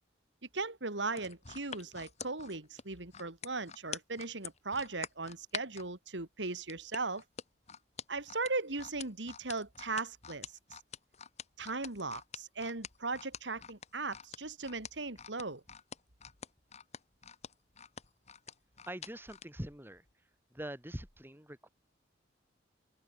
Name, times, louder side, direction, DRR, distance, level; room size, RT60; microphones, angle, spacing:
voice 1, 0.5-7.2 8.1-10.5 11.6-15.6, right 3 dB, 80° right, 2.9 m, -38 dB
sound 1, 1.1-5.9 6.7-19.5 19.9-20.1, left 7 dB, 40° left, 2.0 m, -46 dB
voice 2, 18.8-20.0 20.5-21.7, right 1 dB, 10° right, 4.7 m, -43 dB
open air
head